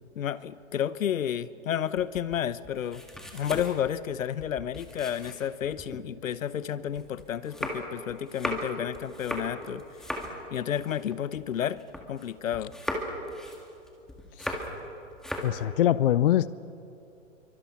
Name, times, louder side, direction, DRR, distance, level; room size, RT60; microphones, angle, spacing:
voice 1, 0.1-3.0 3.3-9.8 10.5-11.8 12.1-12.8, left 9 dB, 80° left, 16 dB, 1.0 m, -31 dB
sound 1, 2.0-6.0 6.5-12.3 12.5-14.9 15.1-15.6, equal, ahead, 1.8 m, -37 dB
voice 2, 15.4-16.5, left 12 dB, 45° left, 17 dB, 0.5 m, -23 dB
27.0 x 24.0 x 5.8 m, 2.7 s
hypercardioid pair, 150°, 39 cm